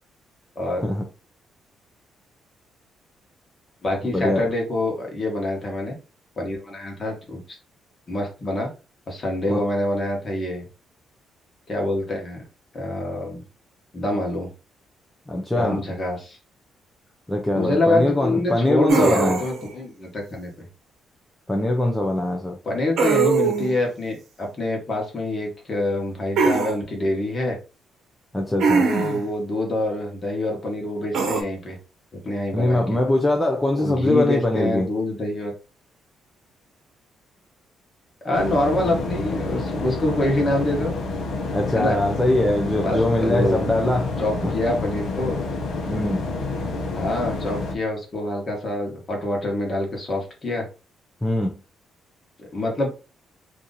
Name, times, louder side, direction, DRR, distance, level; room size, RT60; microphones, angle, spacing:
voice 1, 0.6-0.9 3.8-5.9 6.4-7.6 8.1-8.7 9.1-10.6 11.7-12.4 12.7-13.4 13.9-14.5 15.5-16.4 17.5-20.5 22.6-27.6 28.8-31.8 32.1-32.8 33.7-35.5 38.2-41.0 41.5-42.0 42.8-43.7 44.2-45.4 47.0-50.7 52.4-52.9, left 1 dB, 25° left, 1.2 m, -26 dB
voice 2, 4.1-4.5 9.5-9.7 15.3-15.8 17.3-19.4 21.5-22.6 28.3-28.9 32.5-34.9 41.5-44.5 45.9-46.3 51.2-51.6, left 1 dB, 5° left, 0.4 m, -22 dB
sound 1, 18.9-19.7 23.0-23.8 26.4-26.7 28.6-29.3 31.1-31.4, right 5 dB, 65° right, 0.8 m, -21 dB
sound 2, 38.3-47.7, left 3 dB, 60° left, 0.7 m, -28 dB
2.9 x 2.6 x 3.9 m
cardioid pair, 175°, 0 cm